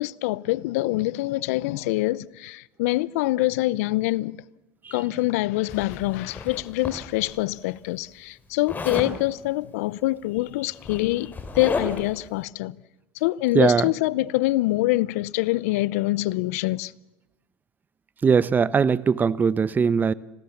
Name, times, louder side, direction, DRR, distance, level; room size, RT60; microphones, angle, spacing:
voice 1, 0.0-4.4 4.9-12.8 13.1-16.9, left 18 dB, 75° left, 0.7 m, -25 dB
Zipper (clothing), 5.7-7.3 8.7-9.1 10.3-10.4 10.7-12.2, left 4 dB, 20° left, 3.5 m, -32 dB
voice 2, 13.5-13.9 18.2-20.1, right 6 dB, 20° right, 0.8 m, -20 dB
26.5 x 16.0 x 7.2 m
supercardioid pair, 110°, 8 cm